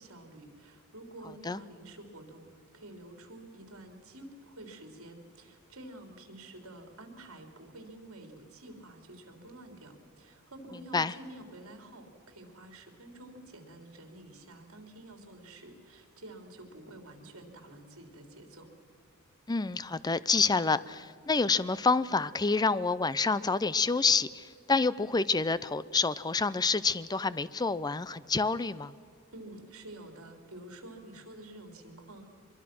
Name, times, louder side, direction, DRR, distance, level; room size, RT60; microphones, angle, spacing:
voice 1, 0.0-18.7 29.3-32.3, right 1 dB, 70° right, 4 dB, 3.5 m, -49 dB
voice 2, 19.5-28.9, left 4 dB, 20° left, 17 dB, 0.5 m, -28 dB
24.0 x 22.5 x 6.1 m, 2.3 s
head